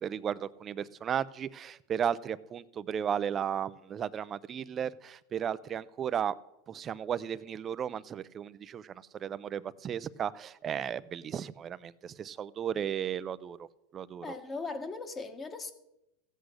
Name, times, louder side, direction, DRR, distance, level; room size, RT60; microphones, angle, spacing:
voice 1, 0.0-6.3 6.7-13.7 13.9-14.3, right 8 dB, 25° right, 0.5 m, -35 dB
voice 2, 14.2-15.7, left 3 dB, 20° left, 1.4 m, -38 dB
15.5 x 8.2 x 6.4 m
supercardioid pair, 140°, 0 cm